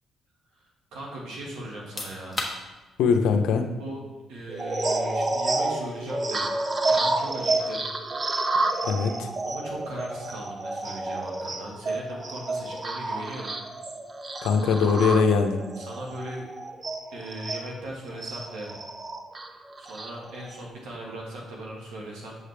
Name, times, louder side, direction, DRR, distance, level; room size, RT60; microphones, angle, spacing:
voice 1, 0.9-2.4 3.8-4.0 4.3-6.5 6.8-7.8 9.4-13.5 15.8-16.5 17.1-18.8 19.8-22.4, right 1 dB, 85° right, -2 dB, 1.6 m, -38 dB
voice 2, 3.0-3.6 8.8-9.3 14.4-15.6, left 5 dB, 85° left, 6 dB, 0.6 m, -21 dB
sound 1, 4.5-17.7 18.2-20.6, right 2 dB, 30° right, 0.5 m, -30 dB
sound 2, 14.3-14.4, left 2 dB, 15° left, 1.2 m, -45 dB
7.4 x 5.0 x 3.3 m, 1.2 s
cardioid pair, 90°, 0 cm